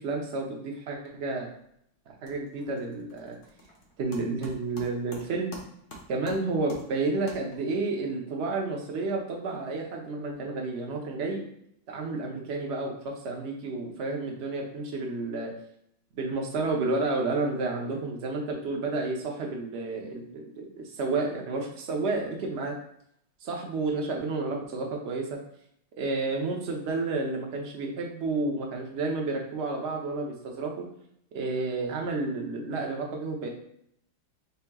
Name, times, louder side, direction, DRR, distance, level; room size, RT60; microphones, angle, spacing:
voice 1, 0.0-1.5 2.2-3.4 4.0-5.5 6.1-11.4 11.9-15.5 16.1-22.7 23.4-25.4 26.0-30.7 31.3-33.5, right 3 dB, 55° right, 0 dB, 0.7 m, -31 dB
sound 1, 1.4-1.8 2.0-7.9, equal, 45° left, 0.7 m, -48 dB
7.0 x 2.9 x 2.3 m, 0.70 s
omnidirectional pair, 2.2 m